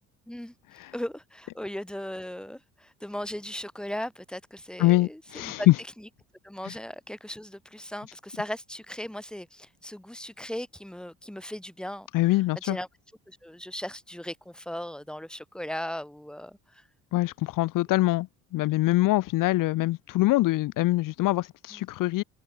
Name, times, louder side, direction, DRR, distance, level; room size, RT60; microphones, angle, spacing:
voice 1, 0.9-5.7 6.0-6.1 6.4-12.1 12.6-12.9 13.3-16.9 21.7-21.8, left 1 dB, ahead, 2.4 m, -37 dB
voice 2, 4.8-5.8 6.6-6.7 12.1-12.8 17.1-22.2, left 18 dB, 60° left, 0.9 m, -24 dB
hypercardioid pair, 70°, 36 cm